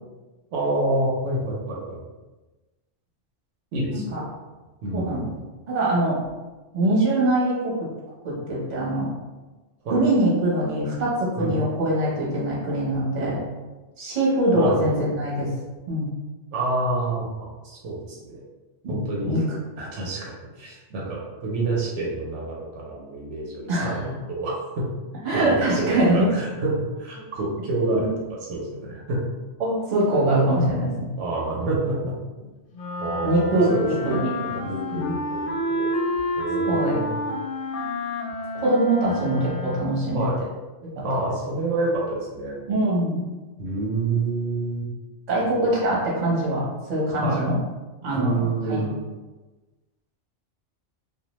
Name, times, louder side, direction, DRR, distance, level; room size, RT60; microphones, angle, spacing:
voice 1, 0.5-2.0 3.7-4.2 4.8-5.4 9.8-10.0 11.4-11.6 14.5-15.0 16.5-18.4 18.9-19.3 19.8-24.9 25.3-29.2 31.2-32.1 32.4-32.5 33.0-34.3 34.6-35.9 36.4-37.1 40.1-40.4 41.0-42.6 43.6-44.9 47.2-47.4 48.1-49.0, right 2 dB, 80° right, -3 dB, 0.9 m, -28 dB
voice 2, 4.9-5.3 5.7-6.2 6.7-7.7 8.2-9.1 9.9-13.4 14.0-15.5 15.9-16.1 18.8-19.0 19.2-19.4 23.7-24.1 25.2-26.3 27.9-28.1 29.6-31.1 33.2-34.7 34.9-35.2 36.7-37.0 38.6-40.3 42.7-43.3 45.3-47.6 48.0-48.8, right 1 dB, 40° right, -5 dB, 0.8 m, -23 dB
sound 1, 32.7-40.1, left 1 dB, 85° left, 0.9 m, -29 dB
2.3 x 2.0 x 2.9 m, 1.2 s
omnidirectional pair, 1.2 m